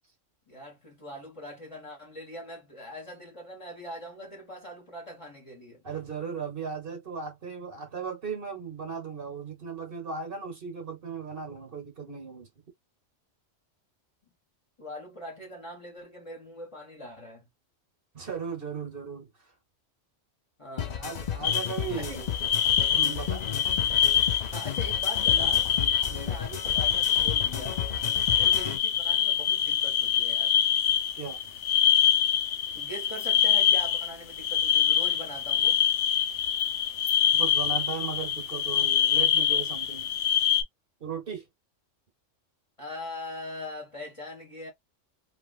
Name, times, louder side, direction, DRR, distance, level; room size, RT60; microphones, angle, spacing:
voice 1, 0.5-5.8 14.2-14.3 14.8-17.5 20.6-21.0 22.0-22.2 24.5-25.7 26.1-27.9 28.3-30.6 32.7-35.8 42.8-44.7, left 1 dB, 25° left, 1.3 m, -42 dB
voice 2, 5.8-12.5 18.1-19.3 21.0-22.3 22.9-23.4 26.1-26.4 31.1-31.5 33.5-33.6 37.3-40.1 41.0-41.5, right 6 dB, 50° right, 1.2 m, -37 dB
sound 1, 20.8-28.8, left 8 dB, 50° left, 0.6 m, -34 dB
sound 2, 21.4-40.6, left 9 dB, 70° left, 0.9 m, -25 dB
3.2 x 2.6 x 2.4 m
omnidirectional pair, 1.3 m